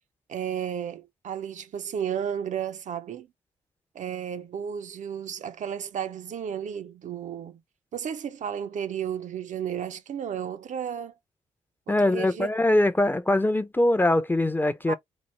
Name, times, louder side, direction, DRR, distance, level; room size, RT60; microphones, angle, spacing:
voice 1, 0.3-3.3 3.9-7.6 7.9-11.1 11.9-12.5 14.9-15.0, right 8 dB, 55° right, 0.4 m, -33 dB
voice 2, 11.9-14.9, left 1 dB, 15° left, 0.5 m, -22 dB
3.0 x 2.0 x 3.1 m
hypercardioid pair, 45°, 15 cm